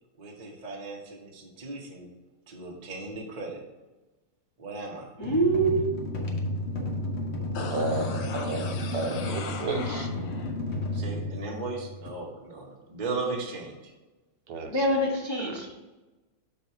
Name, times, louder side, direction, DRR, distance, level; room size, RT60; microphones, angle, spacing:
voice 1, 0.2-2.1 2.5-3.6 4.6-5.1 10.9-13.9, right 3 dB, 45° right, 0 dB, 0.5 m, -37 dB
sound 1, 5.2-12.1, left 2 dB, 60° left, 0.7 m, -32 dB
voice 2, 5.2-5.9 14.7-15.7, right 2 dB, 20° left, -5 dB, 0.8 m, -25 dB
sound 2, 7.5-10.5 10.9-11.0, left 5 dB, 80° left, 1.7 m, -38 dB
voice 3, 7.7-10.1 14.5-14.9 15.4-15.6, right 3 dB, 80° right, 5 dB, 1.6 m, -33 dB
6.2 x 4.0 x 5.7 m, 1.1 s
omnidirectional pair, 2.4 m